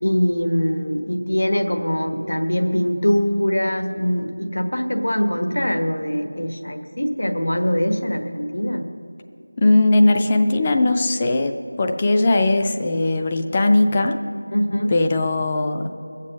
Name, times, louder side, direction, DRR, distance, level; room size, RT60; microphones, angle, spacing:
voice 1, 0.0-8.8 14.5-14.9, equal, 75° left, 5 dB, 1.4 m, -22 dB
voice 2, 9.6-14.2 14.9-15.9, left 2 dB, 10° left, 5 dB, 0.3 m, -19 dB
20.5 x 7.4 x 6.3 m, 2.9 s
figure-of-eight pair, 180°, 0 cm